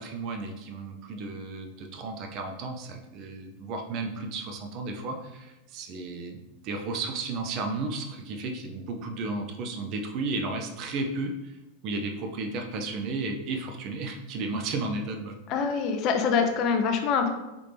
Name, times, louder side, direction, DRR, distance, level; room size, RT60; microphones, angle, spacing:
voice 1, 0.0-11.5 11.8-15.4, right 3 dB, 40° right, 4 dB, 0.5 m, -33 dB
voice 2, 15.5-17.3, left 6 dB, 40° left, 6 dB, 0.5 m, -24 dB
3.7 x 3.4 x 3.2 m, 0.99 s
figure-of-eight pair, 90°, 0 cm